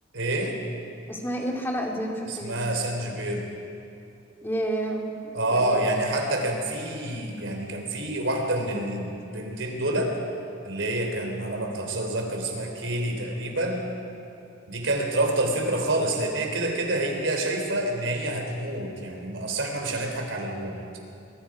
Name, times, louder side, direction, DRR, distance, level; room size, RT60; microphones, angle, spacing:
voice 1, 0.1-0.6 2.3-3.4 5.3-10.1 10.6-13.8 14.7-20.8, right 1 dB, 85° right, 2 dB, 3.7 m, -27 dB
voice 2, 1.1-2.6 4.4-5.2 5.5-5.8, right 1 dB, 10° left, 0 dB, 2.6 m, -30 dB
24.0 x 22.5 x 5.0 m, 2.7 s
head